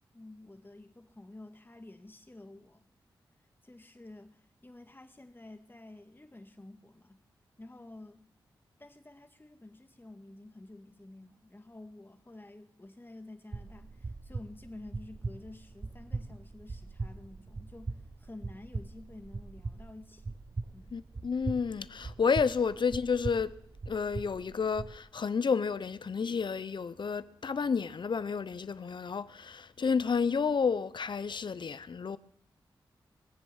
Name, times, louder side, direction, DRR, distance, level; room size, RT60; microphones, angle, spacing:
voice 1, 0.1-2.8 3.6-7.2 7.6-8.2 8.8-20.4 20.7-20.9, left 2 dB, 25° left, 1.9 m, -50 dB
sound 1, 13.5-25.0, right 3 dB, 40° right, 0.9 m, -41 dB
voice 2, 20.9-23.6 23.9-32.2, left 5 dB, 60° left, 0.7 m, -31 dB
21.5 x 7.4 x 7.2 m
cardioid pair, 45°, 9 cm